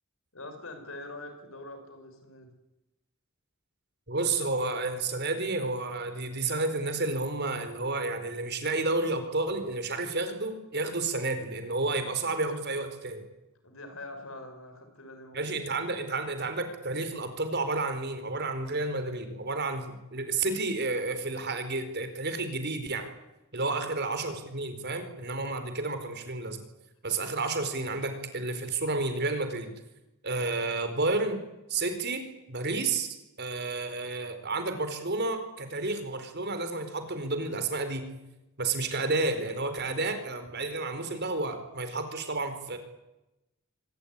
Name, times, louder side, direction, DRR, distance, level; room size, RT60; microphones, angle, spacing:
voice 1, 0.3-2.5 13.6-15.5 23.7-23.9, left 2 dB, 75° left, 7 dB, 6.3 m, -44 dB
voice 2, 4.1-13.2 15.3-23.1 23.5-26.6 27.0-29.7 30.2-31.4 31.7-33.1 33.4-38.0 38.6-42.8, right 3 dB, 50° right, 9 dB, 4.5 m, -31 dB
25.5 x 19.5 x 9.8 m, 0.94 s
head